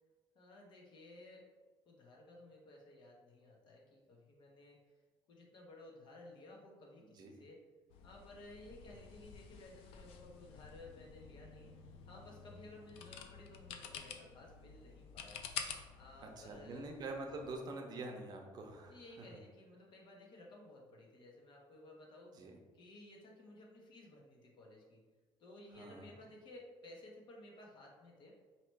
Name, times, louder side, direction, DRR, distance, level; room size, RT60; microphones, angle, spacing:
voice 1, 0.3-1.5 1.8-4.8 5.3-7.6 8.0-11.7 12.0-15.4 16.0-16.9 18.9-22.5 22.7-25.0 25.4-28.3, left 1 dB, 55° left, -1 dB, 0.9 m, -56 dB
voice 2, 7.0-7.3 16.2-19.3 22.3-22.6 25.8-26.1, right 2 dB, 45° right, 2 dB, 0.7 m, -46 dB
sound 1, 7.9-17.5, left 7 dB, 90° left, 0.4 m, -50 dB
3.1 x 2.9 x 4.5 m, 1.4 s
cardioid pair, 135°, 9 cm